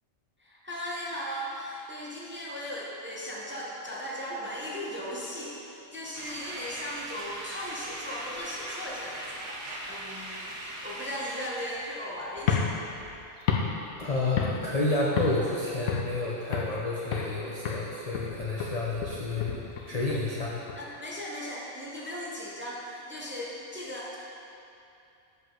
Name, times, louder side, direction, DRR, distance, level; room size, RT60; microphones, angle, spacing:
voice 1, 0.4-12.7 20.8-24.2, equal, 10° right, -5 dB, 0.7 m, -37 dB
sound 1, 6.1-11.9, right 1 dB, 90° right, 1.3 m, -40 dB
sound 2, 12.4-14.8 15.2-15.5 15.9-16.8 17.1-17.4 17.7-20.8, left 6 dB, 85° left, 1.1 m, -31 dB
voice 2, 14.0-19.5 19.9-20.6, left 2 dB, 45° left, -5 dB, 0.5 m, -30 dB
7.5 x 5.4 x 3.7 m, 2.7 s
omnidirectional pair, 1.4 m